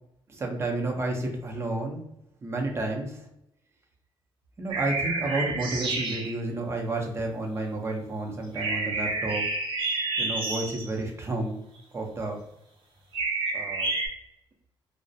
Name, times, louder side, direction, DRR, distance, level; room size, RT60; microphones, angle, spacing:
voice 1, 0.3-2.0 2.4-3.2 4.6-9.4 10.2-11.6 11.9-12.4 13.5-13.9, right 2 dB, 30° right, 1 dB, 0.6 m, -31 dB
sound 1, 4.7-6.4 8.6-10.9 13.1-14.1, right 3 dB, 70° right, 0.6 m, -29 dB
2.3 x 2.0 x 2.6 m, 0.80 s
cardioid pair, 110°, 9 cm